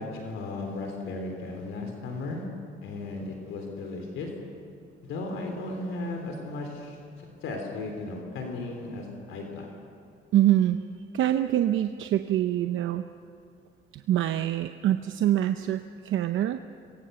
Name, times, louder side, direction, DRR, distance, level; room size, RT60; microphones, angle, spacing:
voice 1, 0.0-2.4 2.8-4.3 5.1-7.0 7.4-9.8, left 2 dB, 85° left, 2 dB, 3.9 m, -35 dB
voice 2, 10.3-10.8 11.1-13.0 13.9-16.6, right 12 dB, 80° right, 8 dB, 0.8 m, -25 dB
27.0 x 23.0 x 7.0 m, 2.4 s
cardioid pair, 90°, 20 cm